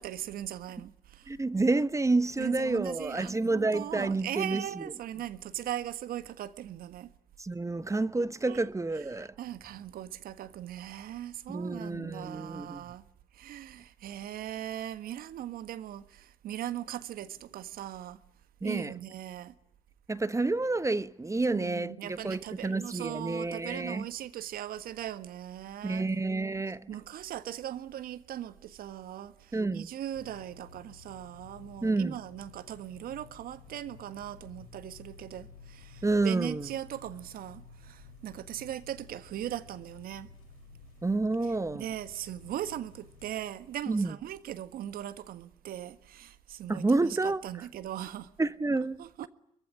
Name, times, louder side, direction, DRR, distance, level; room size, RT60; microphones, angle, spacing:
voice 1, 0.0-1.3 2.4-7.1 8.5-8.6 9.1-13.0 13.3-18.2 18.6-19.5 21.5-26.1 26.9-40.3 41.7-48.3 49.0-49.3, right 11 dB, 60° right, 1.6 m, -39 dB
voice 2, 1.3-4.8 7.4-9.3 11.5-12.8 18.6-18.9 20.1-24.0 25.8-26.9 29.5-29.9 31.8-32.2 36.0-36.7 41.0-41.8 43.9-44.1 46.7-47.4 48.4-49.0, right 3 dB, 15° right, 1.2 m, -29 dB
sound 1, 30.1-43.3, left 6 dB, 75° left, 3.4 m, -53 dB
24.0 x 23.5 x 9.9 m
hypercardioid pair, 50°, 17 cm